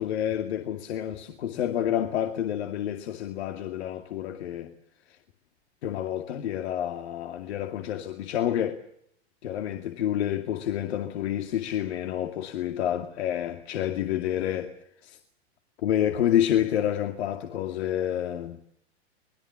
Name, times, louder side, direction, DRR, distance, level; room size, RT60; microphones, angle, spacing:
voice 1, 0.0-4.7 5.1-5.2 5.8-8.8 9.4-14.7 15.0-15.2 15.8-18.6, left 11 dB, 70° left, 2.4 m, -28 dB
25.5 x 20.5 x 7.1 m
hypercardioid pair, 120°, 34 cm